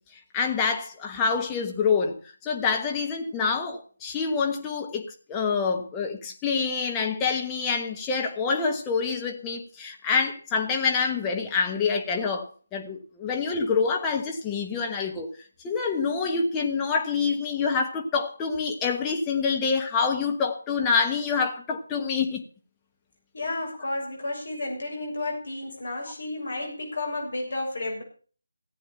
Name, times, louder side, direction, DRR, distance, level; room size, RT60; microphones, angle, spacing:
voice 1, 0.3-2.2 2.4-15.3 15.6-22.4, left 5 dB, 10° left, 1.2 m, -26 dB
voice 2, 23.3-28.0, left 2 dB, 55° left, 6.9 m, -32 dB
15.0 x 8.6 x 6.8 m
figure-of-eight pair, 155°, 0 cm